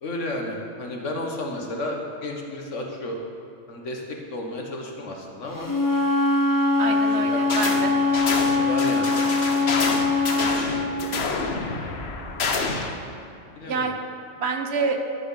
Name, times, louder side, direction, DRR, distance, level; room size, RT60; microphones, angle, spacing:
voice 1, 0.0-3.2 3.7-4.0 4.3-5.7 6.9-7.4 7.7-8.1 8.5-9.3 10.0-11.3 13.5-13.9, left 1 dB, 75° left, 1 dB, 1.6 m, -33 dB
Wind instrument woodwind instrument, 5.6-10.7, left 3 dB, 15° left, 1.0 m, -22 dB
voice 2, 6.8-7.9 11.8-12.2 13.6-13.9 14.4-15.0, right 4 dB, 60° right, 5 dB, 1.0 m, -28 dB
sound 1, 7.5-7.8 8.1-12.9, left 4 dB, 55° left, 1.1 m, -28 dB
11.0 x 7.3 x 5.7 m, 2.7 s
omnidirectional pair, 1.3 m